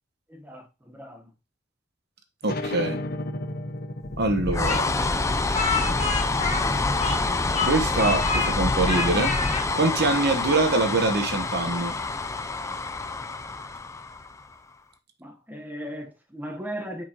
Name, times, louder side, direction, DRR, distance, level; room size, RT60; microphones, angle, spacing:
voice 1, 0.3-1.3 15.2-17.0, equal, 10° right, 1.1 m, -37 dB
sound 1, 2.4-7.7, left 1 dB, 50° left, 0.7 m, -36 dB
voice 2, 2.4-3.0 4.2-4.9 7.7-9.3 9.8-11.9, right 3 dB, 55° right, 1.1 m, -24 dB
sound 2, 4.0-14.5, left 3 dB, 15° left, 0.5 m, -27 dB
Speech, 4.7-7.3 7.5-8.5 8.9-9.6, left 4 dB, 35° left, 1.4 m, -28 dB
9.2 x 5.1 x 2.9 m
head